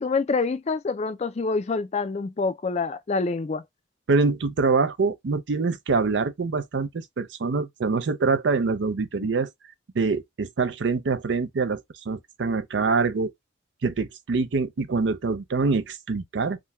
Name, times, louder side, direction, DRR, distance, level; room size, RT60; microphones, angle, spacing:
voice 1, 0.0-3.6, left 4 dB, 35° left, 0.4 m, -26 dB
voice 2, 4.1-9.5 9.9-13.3 13.8-16.6, right 4 dB, 70° right, 0.5 m, -25 dB
3.7 x 2.2 x 2.6 m
head